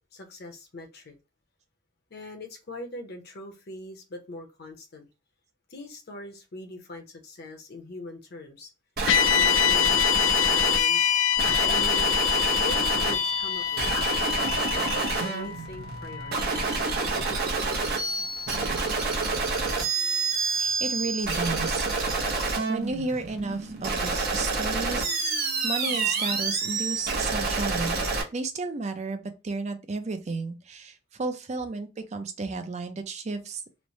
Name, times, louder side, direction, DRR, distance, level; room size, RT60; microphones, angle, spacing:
voice 1, 0.1-1.1 2.1-5.1 5.7-8.7 9.1-10.0 10.4-11.1 11.6-12.2 12.5-14.0 14.7-16.9, left 1 dB, 55° left, 0.7 m, -41 dB
sound 1, 9.0-28.2, right 3 dB, 55° right, 0.8 m, -28 dB
sound 2, 9.1-17.4, left 11 dB, 85° left, 0.3 m, -26 dB
voice 2, 20.6-21.9 22.7-28.0 28.3-33.6, right 3 dB, 35° right, 0.4 m, -33 dB
3.1 x 2.0 x 2.6 m
head